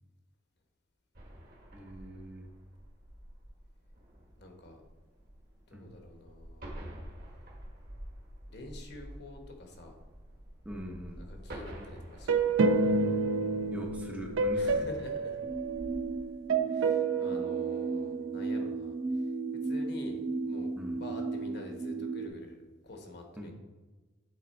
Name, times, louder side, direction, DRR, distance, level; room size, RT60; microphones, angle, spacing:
sound 1, 1.2-16.3, equal, 50° right, 1.4 m, -49 dB
voice 1, 1.7-2.5 5.7-5.9 10.6-11.2 13.7-14.9 20.8-21.0 23.4-23.5, equal, 5° right, 0 dB, 0.6 m, -42 dB
voice 2, 4.4-4.8 5.7-6.7 8.5-9.9 11.2-12.5 14.5-15.4 16.7-19.3 19.6-23.5, left 2 dB, 55° left, 3 dB, 1.1 m, -47 dB
sound 2, 12.3-16.1 16.5-18.5, right 3 dB, 90° right, 0.5 m, -29 dB
sound 3, 15.4-22.3, right 3 dB, 65° right, 1.3 m, -35 dB
8.6 x 4.0 x 4.2 m, 1.2 s
head